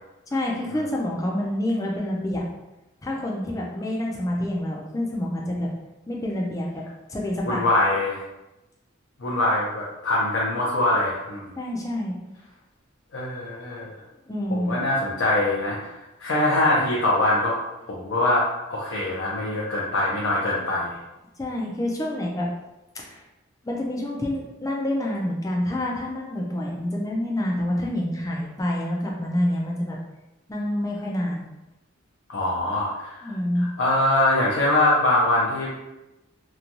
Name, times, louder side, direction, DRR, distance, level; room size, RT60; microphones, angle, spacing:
voice 1, 0.3-2.4 3.0-5.7 6.1-6.8 7.1-7.6 11.6-12.2 14.3-14.7 21.4-22.5 22.9-23.2 23.6-30.0 30.5-31.5 33.2-33.7, left 1 dB, 15° left, -2 dB, 0.4 m, -27 dB
voice 2, 7.5-8.2 9.2-11.5 13.1-13.9 14.6-15.8 16.2-17.5 17.9-20.9 32.3-33.3 33.6-35.7, left 1 dB, 65° left, -5 dB, 0.5 m, -23 dB
3.0 x 2.2 x 2.5 m, 0.97 s
head